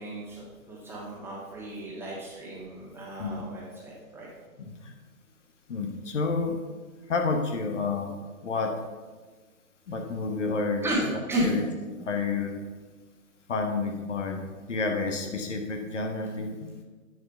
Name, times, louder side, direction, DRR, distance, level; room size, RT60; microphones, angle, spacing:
voice 1, 0.0-4.3 10.8-11.5, right 1 dB, 5° right, -6 dB, 1.7 m, -33 dB
voice 2, 4.6-4.9 5.7-6.6 7.1-8.1 8.4-8.7 9.9-10.8 11.4-11.6 12.0-12.6 13.5-14.4 14.7-16.8, left 4 dB, 55° left, 3 dB, 1.2 m, -29 dB
10.0 x 5.0 x 5.7 m, 1.3 s
figure-of-eight pair, 125°, 43 cm